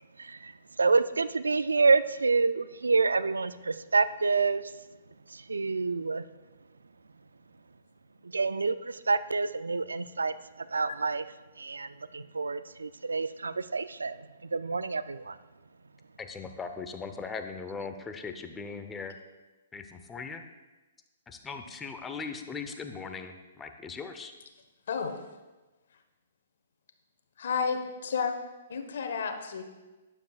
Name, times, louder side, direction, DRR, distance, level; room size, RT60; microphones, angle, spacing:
voice 1, 0.0-4.7 5.3-6.3 8.2-11.2 11.6-15.4, right 4 dB, 90° right, 14 dB, 0.4 m, -28 dB
voice 2, 16.2-19.1 19.7-20.4 21.3-24.3, left 5 dB, 15° left, 6 dB, 0.8 m, -39 dB
voice 3, 27.4-28.3 28.7-29.6, left 6 dB, 65° left, 6 dB, 1.2 m, -31 dB
11.5 x 9.7 x 2.4 m, 1.2 s
hypercardioid pair, 130°, 0 cm